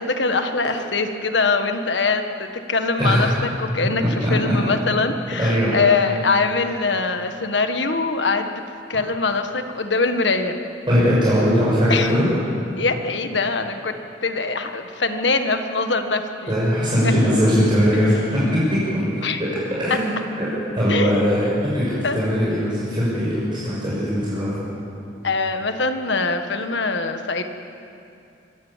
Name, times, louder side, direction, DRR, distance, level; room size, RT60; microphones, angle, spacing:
voice 1, 0.0-8.5 8.9-10.6 11.9-12.1 12.8-13.9 14.2-16.5 17.0-17.1 17.9-18.2 19.2-19.4 20.9-21.5 22.0-22.2 25.2-27.4, left 3 dB, 90° left, 7 dB, 1.6 m, -23 dB
voice 2, 4.0-4.5 5.4-5.7 10.9-12.4 16.5-18.2 18.5-19.0 19.8-20.1 20.4-24.5, equal, 25° right, -8 dB, 6.5 m, -20 dB
25.0 x 17.0 x 7.4 m, 2.6 s
head